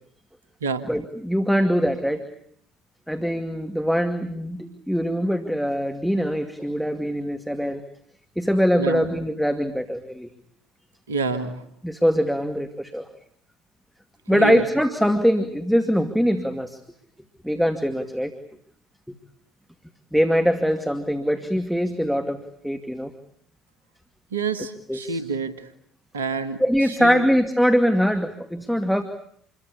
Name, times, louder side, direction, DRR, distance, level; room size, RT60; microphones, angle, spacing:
voice 1, 0.9-2.2 3.1-7.8 8.4-10.3 11.8-13.1 14.3-16.8 17.4-18.3 20.1-23.1 24.9-25.2 26.6-29.0, equal, ahead, 7 dB, 2.4 m, -22 dB
voice 2, 8.8-9.1 11.1-11.6 14.3-14.6 24.3-25.7 26.1-27.3, right 4 dB, 85° right, 10 dB, 1.8 m, -28 dB
28.0 x 22.5 x 8.6 m, 0.67 s
figure-of-eight pair, 60°, 0 cm